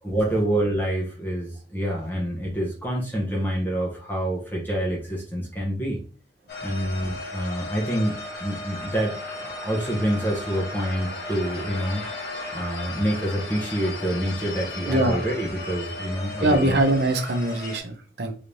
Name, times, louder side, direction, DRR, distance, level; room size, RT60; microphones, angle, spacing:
voice 1, 0.0-6.0 6.6-16.8, right 1 dB, 10° left, -4 dB, 0.8 m, -27 dB
sound 1, 6.5-17.8, left 2 dB, 60° left, 1.0 m, -35 dB
voice 2, 14.9-15.2 16.4-18.3, right 1 dB, 65° right, 5 dB, 0.7 m, -22 dB
3.3 x 3.2 x 2.6 m, 0.40 s
head